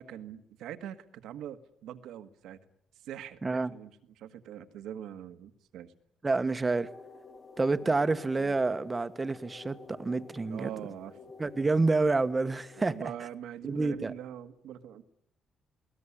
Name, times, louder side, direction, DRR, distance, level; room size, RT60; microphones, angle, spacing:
voice 1, 0.0-2.6 3.0-3.4 3.7-3.9 4.2-5.9 10.5-11.2 12.8-15.0, right 10 dB, 85° right, 1.6 m, -43 dB
voice 2, 3.4-3.7 6.2-6.9 7.6-10.7 11.4-13.1 13.7-14.1, right 3 dB, 25° right, 1.2 m, -28 dB
sound 1, 6.8-13.0, left 3 dB, 30° left, 3.2 m, -50 dB
21.5 x 18.0 x 10.0 m
cardioid pair, 90°, 0 cm